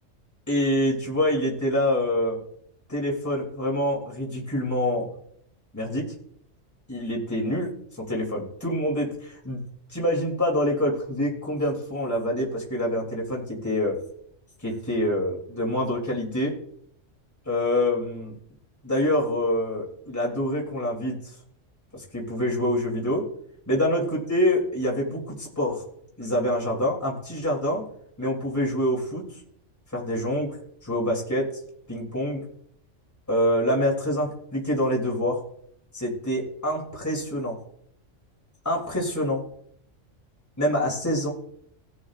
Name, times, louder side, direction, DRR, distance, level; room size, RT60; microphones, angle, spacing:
voice 1, 0.5-2.4 2.9-5.1 5.7-6.0 6.9-7.7 8.1-9.6 9.9-14.0 14.6-16.5 17.4-18.3 18.8-21.1 21.9-23.2 23.7-25.8 26.2-27.8 28.2-29.2 29.9-30.6 30.8-31.5 31.9-32.4 33.3-35.4 35.9-37.6 38.6-39.4 40.6-41.3, left 1 dB, 10° left, -3 dB, 2.8 m, -26 dB
18.5 x 8.9 x 2.4 m, 0.69 s
omnidirectional pair, 1.4 m